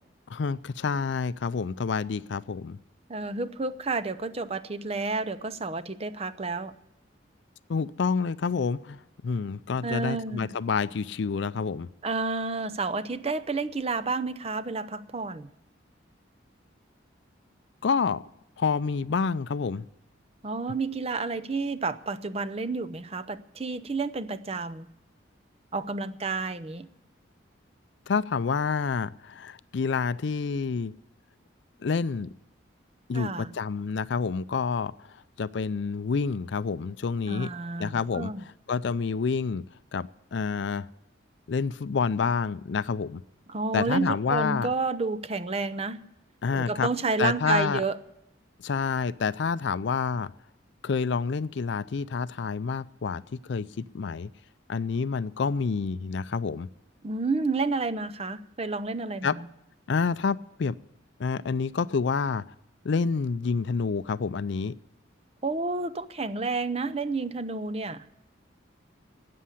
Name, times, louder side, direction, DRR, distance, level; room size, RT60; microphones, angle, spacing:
voice 1, 0.3-2.8 7.7-9.0 9.2-11.9 17.8-18.2 18.6-19.9 28.1-30.9 31.8-32.3 33.1-34.9 35.4-37.5 37.8-38.3 38.7-39.7 39.9-40.9 41.5-43.2 43.7-44.7 46.4-46.9 47.2-47.8 48.6-50.3 50.8-53.2 53.5-54.3 54.7-56.7 59.2-59.3 59.9-60.8 61.2-62.4 62.8-64.7, left 5 dB, 65° left, 0.4 m, -28 dB
voice 2, 3.1-6.7 9.8-10.5 12.0-15.5 20.4-24.9 25.7-26.9 33.1-33.5 37.3-38.4 43.5-46.0 46.5-48.0 57.0-59.5 65.4-68.1, right 3 dB, 30° right, 0.6 m, -30 dB
13.0 x 8.5 x 9.8 m
head